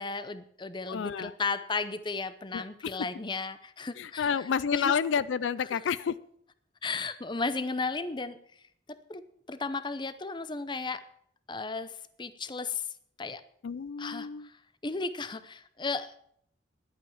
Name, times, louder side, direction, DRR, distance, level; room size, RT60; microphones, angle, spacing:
voice 1, 0.0-4.9 5.6-5.8 6.8-8.4 9.1-9.2 9.5-11.0 11.5-11.9 12.2-12.9 13.2-13.4 14.0-14.5 14.8-16.1, left 4 dB, 25° left, 13 dB, 0.7 m, -34 dB
voice 2, 0.9-1.3 2.5-2.6 4.0-6.1 13.6-14.5, left 7 dB, 80° left, 17 dB, 0.4 m, -29 dB
11.0 x 8.8 x 7.2 m, 0.67 s
head